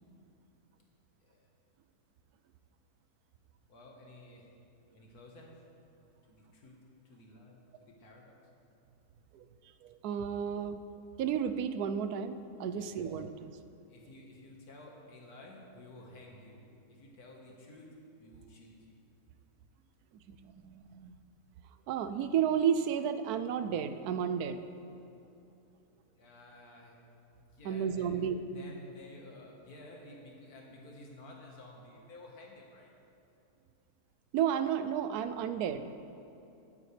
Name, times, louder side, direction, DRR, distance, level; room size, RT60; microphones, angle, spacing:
voice 1, 3.7-4.5 4.9-5.5 6.3-6.8 7.1-8.4 12.7-13.2 13.9-17.9 18.2-18.7 26.2-27.0 27.4-32.9, left 1 dB, 85° left, -1 dB, 2.0 m, -52 dB
voice 2, 9.8-10.8 11.2-13.5 20.3-21.1 21.9-24.6 27.6-28.4 34.3-35.8, right 8 dB, 90° right, 10 dB, 1.1 m, -32 dB
16.5 x 8.3 x 3.3 m, 2.8 s
omnidirectional pair, 1.6 m